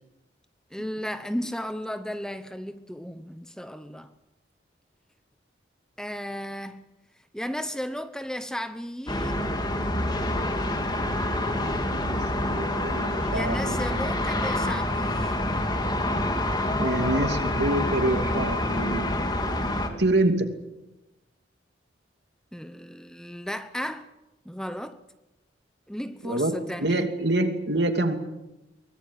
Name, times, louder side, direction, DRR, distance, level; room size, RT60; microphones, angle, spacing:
voice 1, 0.7-4.1 6.0-6.8 7.3-9.6 13.3-15.5 22.5-24.1 24.4-25.0 25.9-27.1, equal, 5° left, 0.9 m, -34 dB
sound 1, 9.1-19.9, left 1 dB, 20° left, 2.5 m, -27 dB
voice 2, 11.9-14.1 16.8-19.1 20.0-20.5 26.2-28.2, right 1 dB, 60° right, 2.7 m, -26 dB
23.5 x 19.5 x 9.1 m
head